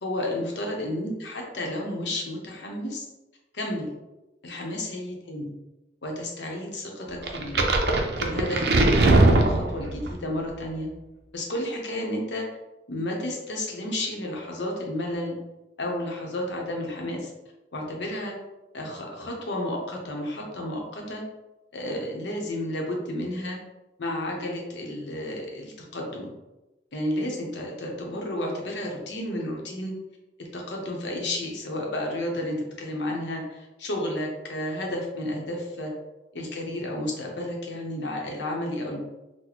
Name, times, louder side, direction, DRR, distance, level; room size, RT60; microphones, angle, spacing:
voice 1, 0.0-3.1 3.5-3.9 4.4-5.5 6.0-7.7 8.2-10.9 11.3-12.4 12.9-15.4 15.8-17.3 17.7-18.3 18.7-21.2 21.7-23.6 24.0-26.3 26.9-29.9 30.5-35.9 36.3-39.0, left 1 dB, 85° left, 0 dB, 0.8 m, -32 dB
sound 1, 7.3-10.1, right 2 dB, 65° right, 0.4 m, -20 dB
4.0 x 2.1 x 3.0 m, 1.0 s
head